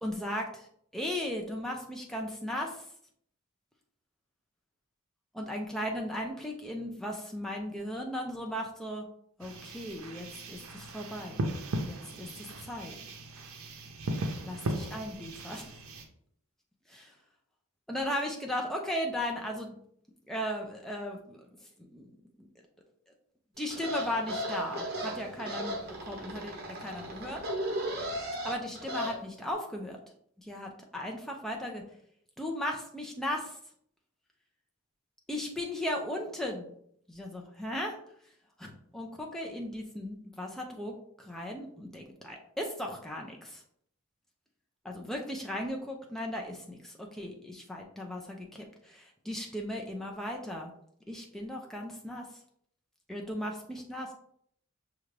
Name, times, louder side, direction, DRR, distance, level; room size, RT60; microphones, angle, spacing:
voice 1, 0.0-0.7 0.9-2.9 5.3-9.1 9.4-11.5 11.8-13.0 14.4-15.7 16.9-17.1 17.9-19.8 20.3-22.1 22.4-22.5 23.6-25.8 26.0-27.4 28.4-30.0 30.4-31.8 32.4-33.6 35.3-36.7 37.1-38.0 38.6-43.6 44.8-50.7 51.1-52.4 53.1-54.1, left 1 dB, ahead, 0 dB, 0.5 m, -37 dB
sound 1, 9.4-16.1, right 1 dB, 80° right, 0.6 m, -37 dB
sound 2, 23.7-29.1, equal, 50° right, 0.9 m, -36 dB
5.6 x 2.5 x 3.2 m, 0.68 s
head